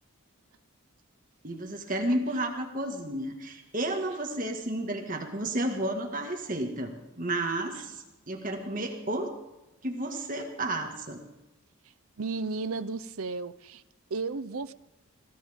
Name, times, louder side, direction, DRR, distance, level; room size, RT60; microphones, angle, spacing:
voice 1, 1.4-9.3 9.8-11.2, right 1 dB, 40° right, 3 dB, 1.9 m, -32 dB
voice 2, 12.2-13.8 14.1-14.7, right 4 dB, 85° right, 14 dB, 0.7 m, -33 dB
22.0 x 16.5 x 3.6 m, 0.98 s
head